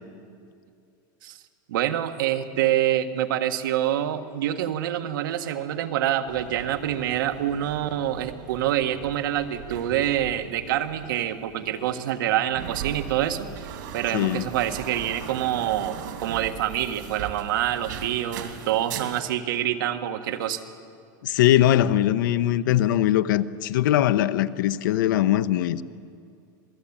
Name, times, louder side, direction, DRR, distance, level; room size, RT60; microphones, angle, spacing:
voice 1, 1.7-20.6, right 11 dB, 85° right, 1.7 m, -26 dB
sound 1, 6.3-19.2, right 8 dB, 70° right, 2.7 m, -39 dB
voice 2, 14.1-14.5 21.2-25.8, left 12 dB, 75° left, 0.8 m, -21 dB
27.0 x 18.5 x 8.8 m
supercardioid pair, 180°, 11 cm